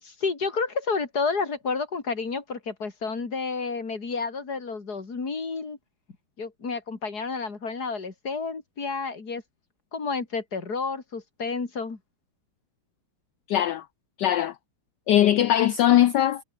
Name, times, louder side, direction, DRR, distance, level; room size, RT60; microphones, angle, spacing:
voice 1, 0.0-5.8 6.4-9.4 9.9-12.0, left 4 dB, 50° left, 3.8 m, -30 dB
voice 2, 13.5-13.8 14.2-14.5 15.1-16.4, left 12 dB, 65° left, 1.2 m, -20 dB
omnidirectional pair, 2.2 m